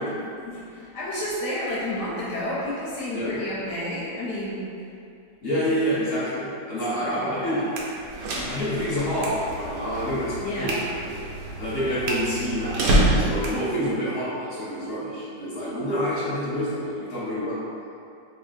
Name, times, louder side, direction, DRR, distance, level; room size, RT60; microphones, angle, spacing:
voice 1, 0.0-4.6 7.0-7.6 10.4-10.8, left 1 dB, 75° left, -7 dB, 1.2 m, -31 dB
voice 2, 5.4-7.6 8.3-10.9 11.6-17.6, equal, 25° left, -11 dB, 1.3 m, -27 dB
sound 1, 7.2-14.2, right 2 dB, 80° right, 1.3 m, -39 dB
sound 2, 8.0-13.7, right 1 dB, 65° right, 1.0 m, -27 dB
3.0 x 2.7 x 4.3 m, 2.5 s
omnidirectional pair, 1.9 m